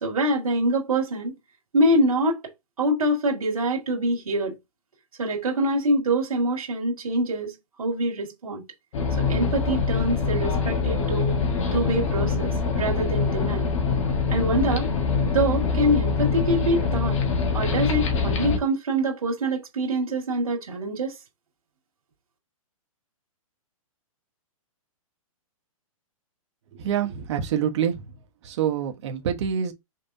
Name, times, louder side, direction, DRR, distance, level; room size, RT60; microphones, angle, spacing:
voice 1, 0.0-1.3 1.7-2.4 2.8-4.6 5.2-8.6 9.3-11.4 11.7-13.7 14.3-14.9 15.3-17.2 17.5-21.1, right 1 dB, 75° right, 2.0 m, -25 dB
sound 1, 8.9-18.6, left 5 dB, 60° left, 1.5 m, -24 dB
voice 2, 26.7-27.9 28.4-29.7, right 8 dB, 55° right, 1.1 m, -26 dB
5.5 x 3.3 x 2.7 m
hypercardioid pair, 135°, 18 cm